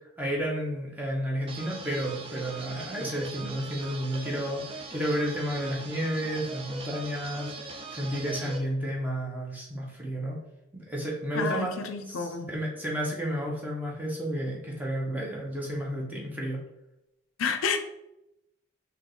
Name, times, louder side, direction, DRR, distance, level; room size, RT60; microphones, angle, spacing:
voice 1, 0.2-10.4 10.7-11.7 12.1-16.6, equal, 10° right, -3 dB, 0.8 m, -32 dB
sound 1, 1.5-8.6, right 3 dB, 25° right, 0.4 m, -41 dB
voice 2, 11.3-12.5 17.4-17.8, left 5 dB, 90° left, 8 dB, 0.5 m, -29 dB
3.5 x 2.8 x 3.8 m, 0.87 s
head